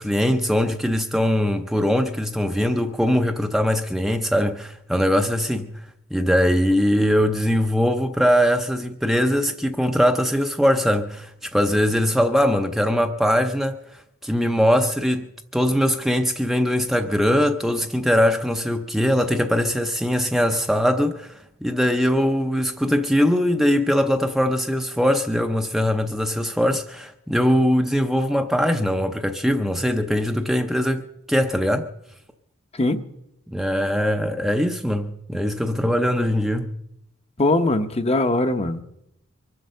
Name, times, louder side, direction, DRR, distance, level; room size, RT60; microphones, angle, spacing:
voice 1, 0.0-5.7 6.1-31.9 33.5-36.7, equal, ahead, 0.6 m, -21 dB
voice 2, 37.4-38.8, left 2 dB, 30° left, 0.8 m, -21 dB
24.0 x 7.9 x 6.7 m
head